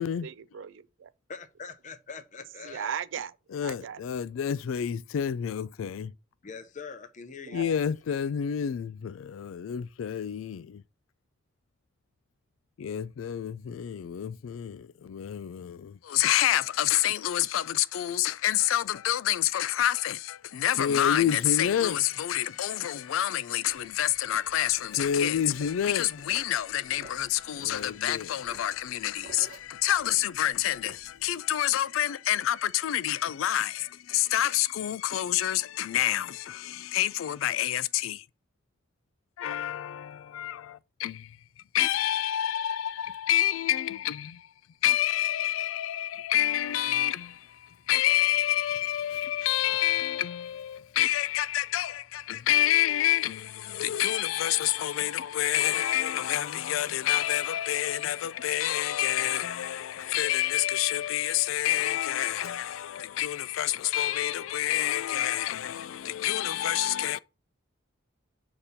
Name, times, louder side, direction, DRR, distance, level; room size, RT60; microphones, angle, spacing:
voice 1, 0.0-1.1 2.6-4.0 7.5-7.7, right 8 dB, 70° right, 0.4 m, -38 dB
voice 2, 1.3-2.9 6.4-7.7, left 5 dB, 40° left, 0.6 m, -43 dB
voice 3, 3.5-6.1 7.5-10.8 12.8-38.3 39.4-41.4 41.7-44.5 44.8-67.2, left 12 dB, 85° left, 0.3 m, -28 dB
sound 1, 23.7-31.4, right 2 dB, 50° right, 1.2 m, -52 dB
6.6 x 2.9 x 5.5 m
head